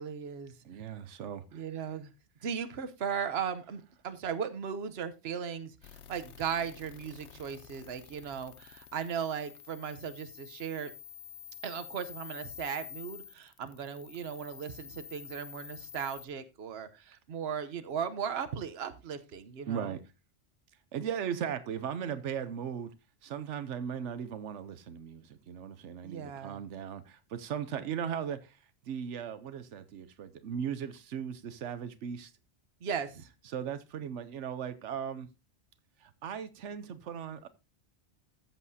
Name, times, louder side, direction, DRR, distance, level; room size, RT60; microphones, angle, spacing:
voice 1, 0.0-0.5 1.5-2.1 2.4-10.9 11.6-19.9 26.0-26.6 32.8-33.3, right 7 dB, 65° right, 1.1 m, -37 dB
voice 2, 0.6-1.6 19.7-20.0 20.9-22.9 23.2-28.6 28.9-32.3 33.5-35.3 36.0-37.5, right 8 dB, 85° right, 1.0 m, -37 dB
sound 1, 5.8-16.3, left 8 dB, 80° left, 1.1 m, -49 dB
14.0 x 7.4 x 2.7 m
omnidirectional pair, 1.2 m